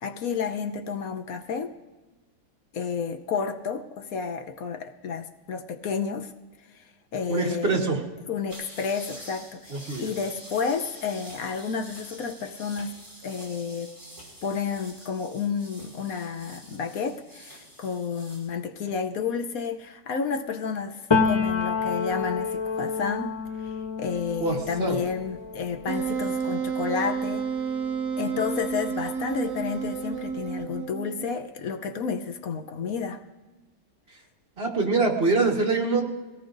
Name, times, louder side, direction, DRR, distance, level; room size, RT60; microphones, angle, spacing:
voice 1, 0.0-1.7 2.7-6.3 6.7-6.8 7.1-7.8 8.3-9.7 10.0-14.0 14.4-23.3 23.6-27.5 28.2-33.2, left 6 dB, 65° left, 7 dB, 1.2 m, -31 dB
voice 2, 7.3-8.0 9.7-10.1 24.4-25.0 34.6-36.0, right 3 dB, 40° right, 0 dB, 1.9 m, -24 dB
sound 1, 8.5-18.5, equal, 10° right, 5.3 m, -47 dB
Piano, 21.1-28.7 29.1-30.6, left 5 dB, 25° left, 0.6 m, -30 dB
Wind instrument woodwind instrument, 25.9-31.3, right 6 dB, 85° right, 1.3 m, -30 dB
22.0 x 18.0 x 2.6 m, 1.2 s
omnidirectional pair, 1.7 m